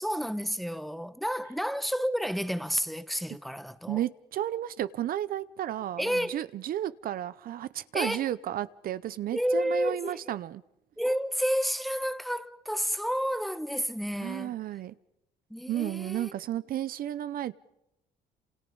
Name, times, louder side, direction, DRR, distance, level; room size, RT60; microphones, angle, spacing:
voice 1, 0.0-4.0 6.0-6.4 7.9-8.2 9.3-10.3 11.0-14.5 15.5-16.3, equal, ahead, 1.2 m, -30 dB
voice 2, 3.9-10.6 14.2-14.9 15.7-17.5, right 12 dB, 60° right, 0.8 m, -33 dB
29.0 x 27.5 x 5.4 m
cardioid pair, 110°, 17 cm